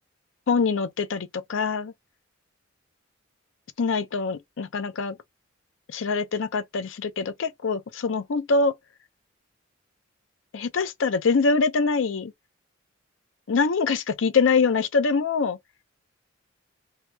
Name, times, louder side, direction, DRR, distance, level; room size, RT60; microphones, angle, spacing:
voice 1, 0.5-1.9 3.8-5.2 5.9-8.8 10.5-12.3 13.5-15.6, left 4 dB, 80° left, 0.5 m, -24 dB
2.8 x 2.2 x 3.0 m
head